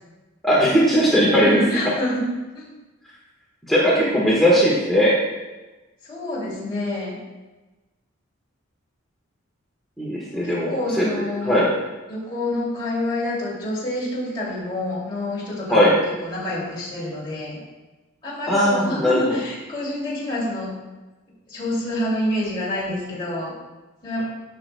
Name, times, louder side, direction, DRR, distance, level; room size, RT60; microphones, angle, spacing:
voice 1, 0.4-1.6 3.7-5.1 10.0-11.0 11.4-11.7 15.7-15.9 18.5-19.4, equal, ahead, -7 dB, 1.2 m, -18 dB
voice 2, 1.3-2.3 2.5-2.6 6.0-7.2 10.3-11.6 12.1-17.6 18.2-20.7 21.5-23.5 24.0-24.2, left 1 dB, 20° left, -8 dB, 2.5 m, -27 dB
12.5 x 5.9 x 2.2 m, 1.2 s
head